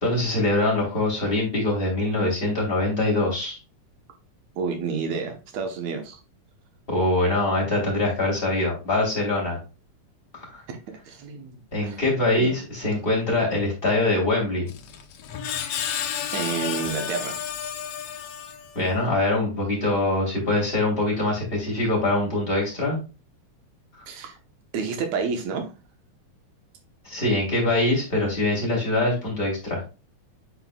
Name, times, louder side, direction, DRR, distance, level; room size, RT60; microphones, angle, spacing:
voice 1, 0.0-3.6 6.9-9.6 10.3-10.6 11.7-14.7 18.7-23.0 27.0-29.8, left 2 dB, 20° left, 3.1 m, -23 dB
voice 2, 4.6-6.2 10.7-10.8 11.1-12.0 12.4-12.5 16.3-17.5 24.1-24.3 24.7-25.6, right 5 dB, 70° right, 2.4 m, -30 dB
Screech, 14.7-19.0, left 8 dB, 70° left, 1.4 m, -32 dB
9.1 x 4.5 x 2.3 m
omnidirectional pair, 3.4 m